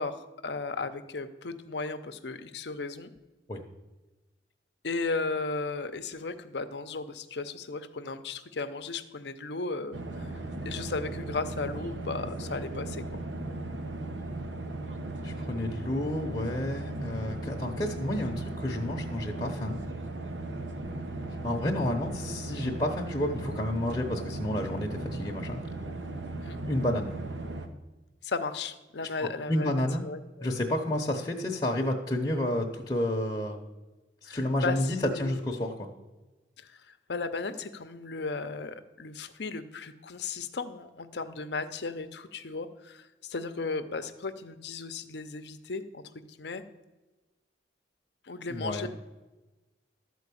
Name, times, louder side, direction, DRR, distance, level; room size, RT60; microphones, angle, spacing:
voice 1, 0.0-3.1 4.8-13.0 26.4-26.6 28.2-30.5 34.3-35.4 36.6-46.6 48.3-48.9, left 3 dB, 65° left, 10 dB, 0.7 m, -35 dB
sound 1, 9.9-27.7, right 2 dB, 90° right, 1.0 m, -37 dB
voice 2, 15.2-19.8 21.4-25.6 26.7-27.2 29.2-30.0 30.4-33.6 34.2-35.9 48.5-48.9, left 1 dB, 25° left, -1 dB, 0.8 m, -30 dB
13.0 x 4.6 x 8.4 m, 1.2 s
head